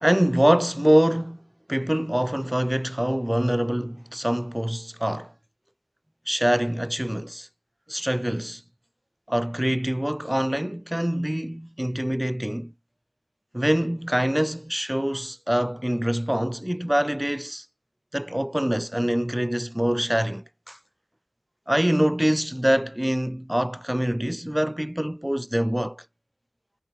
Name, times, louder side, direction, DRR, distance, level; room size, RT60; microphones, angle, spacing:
voice 1, 0.0-1.4 1.7-5.3 6.3-7.5 7.9-8.6 9.3-12.7 13.5-17.6 18.1-20.8 21.7-26.0, equal, 10° right, 2.6 m, -24 dB
wide cardioid pair, 45°, 0 cm